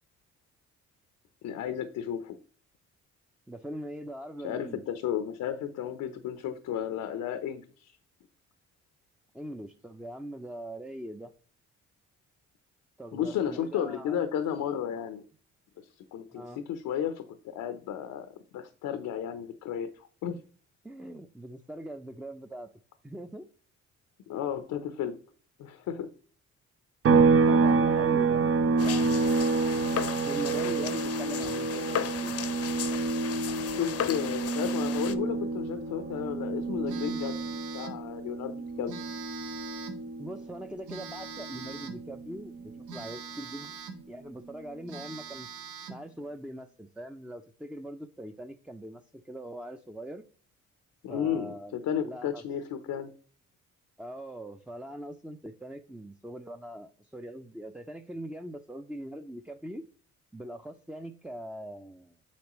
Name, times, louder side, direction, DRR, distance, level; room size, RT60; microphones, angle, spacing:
voice 1, 1.4-2.4 4.4-8.0 13.1-15.2 15.8-20.4 24.3-25.1 25.6-26.1 33.8-37.3 37.7-38.9 51.0-53.1, left 9 dB, 85° left, 10 dB, 0.8 m, -33 dB
voice 2, 3.5-4.8 9.3-11.3 13.0-14.2 16.3-16.6 20.8-22.7 23.0-23.5 27.5-28.4 28.8-32.4 40.2-43.7 44.1-45.5 45.9-50.2 51.1-52.4 54.0-59.8 60.3-62.2, right 1 dB, 5° right, 6 dB, 0.6 m, -42 dB
sound 1, 27.0-40.6 40.9-43.1, right 4 dB, 50° right, 0.8 m, -28 dB
sound 2, 28.8-35.1, left 9 dB, 50° left, 0.7 m, -36 dB
Telephone, 36.9-38.0 38.9-40.1 40.9-42.1 42.9-44.1 44.5-44.6 44.9-46.1, right 6 dB, 80° right, 1.6 m, -43 dB
8.5 x 5.3 x 3.0 m, 0.42 s
cardioid pair, 90°, 30 cm